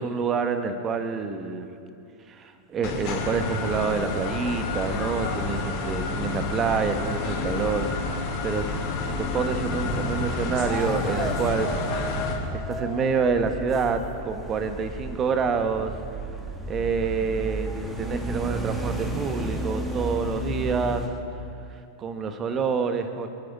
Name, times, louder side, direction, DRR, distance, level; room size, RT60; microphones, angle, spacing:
voice 1, 0.0-1.7 2.3-7.9 8.4-11.7 12.5-15.9 16.7-21.1 22.0-23.3, right 5 dB, 25° right, 8 dB, 1.4 m, -27 dB
sound 1, 2.8-12.3, left 3 dB, 40° left, 3.1 m, -29 dB
sound 2, 4.6-21.1, right 1 dB, 10° right, 1.8 m, -34 dB
28.0 x 10.5 x 4.8 m, 2.5 s
figure-of-eight pair, 90°, 0 cm